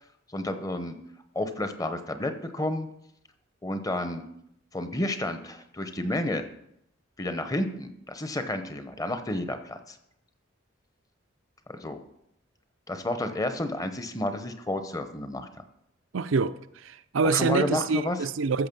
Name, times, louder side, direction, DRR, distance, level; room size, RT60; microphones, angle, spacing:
voice 1, 0.3-1.0 1.3-2.9 3.6-4.2 4.7-6.5 7.2-10.0 11.7-12.0 12.9-15.5 17.2-18.2, left 1 dB, 15° left, 0.8 m, -31 dB
voice 2, 16.1-18.7, right 4 dB, 80° right, 0.5 m, -26 dB
14.0 x 6.5 x 5.3 m
head